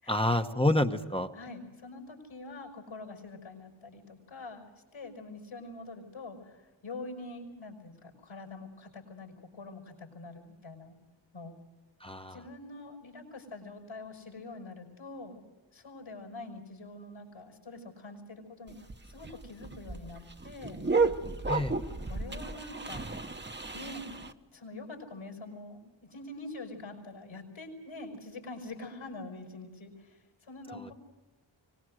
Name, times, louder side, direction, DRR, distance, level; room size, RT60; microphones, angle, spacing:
voice 1, 0.1-1.3 12.0-12.4 21.5-21.7, left 1 dB, 10° left, 6 dB, 1.0 m, -28 dB
voice 2, 1.3-4.7 4.9-10.9 11.3-11.6 12.3-15.4 15.7-18.8 19.0-20.8 22.0-23.0 23.7-24.2 24.5-30.9, left 2 dB, 80° left, 2 dB, 5.7 m, -45 dB
sound 1, 18.7-24.3, right 4 dB, 25° right, 1.1 m, -33 dB
24.5 x 19.5 x 6.4 m, 1.2 s
wide cardioid pair, 105°, 47 cm